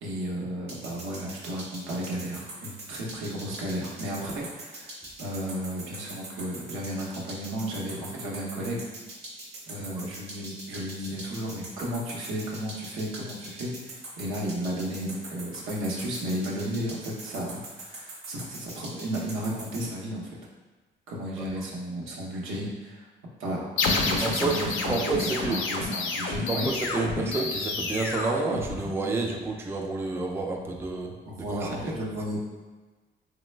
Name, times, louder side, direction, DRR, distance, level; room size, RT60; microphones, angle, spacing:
voice 1, 0.0-8.9 9.7-20.4 21.1-23.1 23.4-26.7 31.3-32.4, equal, 90° right, -3 dB, 0.7 m, -33 dB
sound 1, 0.7-19.8, right 2 dB, 55° right, 0.9 m, -42 dB
sound 2, 23.8-29.2, left 3 dB, 80° left, 0.4 m, -29 dB
voice 2, 24.2-24.5 24.9-25.6 26.5-31.1 31.5-31.9, right 3 dB, 10° right, 0 dB, 0.3 m, -29 dB
3.1 x 2.1 x 3.2 m, 1.3 s
cardioid pair, 90°, 20 cm